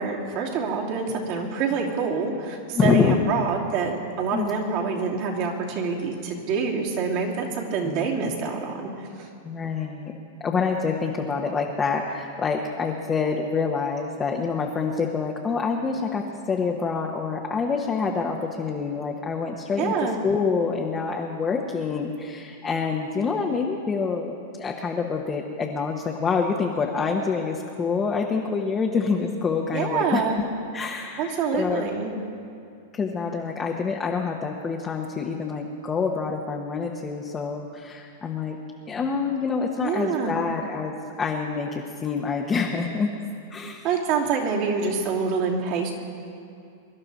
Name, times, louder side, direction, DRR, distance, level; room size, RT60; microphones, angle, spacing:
voice 1, 0.0-9.3 19.8-20.2 29.7-30.4 31.2-32.1 39.8-40.4 43.8-45.9, right 5 dB, 50° right, -2 dB, 2.8 m, -26 dB
voice 2, 2.7-3.1 4.3-4.5 7.8-8.1 9.4-10.1 10.4-19.9 20.2-30.5 30.7-31.8 32.9-38.6 38.9-43.1 43.5-43.8, left 5 dB, 20° left, -1 dB, 1.1 m, -26 dB
24.0 x 11.5 x 4.1 m, 2.5 s
hypercardioid pair, 125°, 0 cm